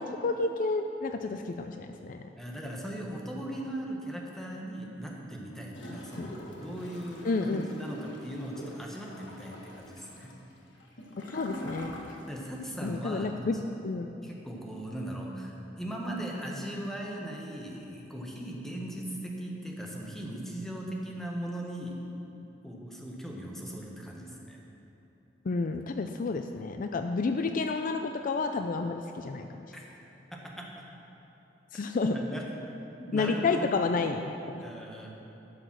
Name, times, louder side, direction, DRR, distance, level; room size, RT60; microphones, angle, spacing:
voice 1, 0.0-2.2 6.2-6.3 7.2-7.6 11.3-11.9 12.8-13.6 13.8-14.1 25.5-29.5 31.7-32.1 33.1-34.6, left 3 dB, 45° left, 6 dB, 0.4 m, -30 dB
voice 2, 2.4-10.3 12.3-13.5 14.2-22.0 22.6-24.6 29.7-29.9 30.3-30.8 32.0-32.5 33.0-33.7 34.6-35.1, right 1 dB, ahead, -2 dB, 1.3 m, -39 dB
Gurgling / Toilet flush, 5.7-12.6 12.9-13.0, equal, 80° left, 1.5 m, -45 dB
12.0 x 7.0 x 6.1 m, 3.0 s
head